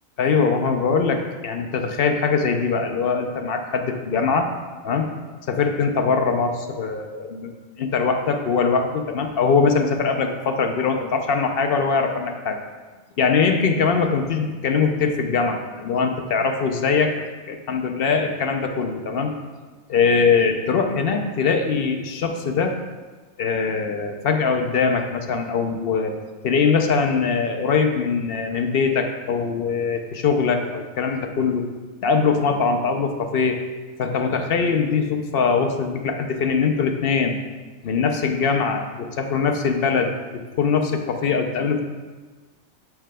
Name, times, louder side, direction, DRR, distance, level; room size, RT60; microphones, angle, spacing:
voice 1, 0.2-4.5 4.8-5.1 5.5-7.5 7.8-12.6 13.2-17.2 17.5-19.3 19.9-22.8 23.4-26.1 26.4-31.6 32.0-33.6 34.0-37.4 37.8-41.8, left 5 dB, 55° left, 5 dB, 0.7 m, -22 dB
12.5 x 5.8 x 2.2 m, 1.3 s
omnidirectional pair, 1.4 m